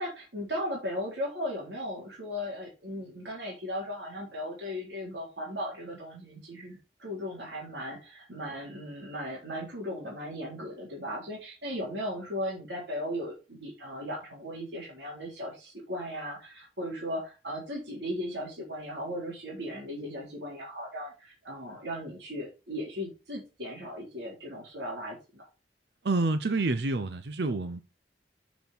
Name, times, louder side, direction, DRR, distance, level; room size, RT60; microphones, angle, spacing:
voice 1, 0.0-25.4, equal, 90° right, 3.8 m, -37 dB
voice 2, 26.0-28.0, right 3 dB, 75° right, 0.7 m, -28 dB
7.1 x 6.1 x 5.2 m
head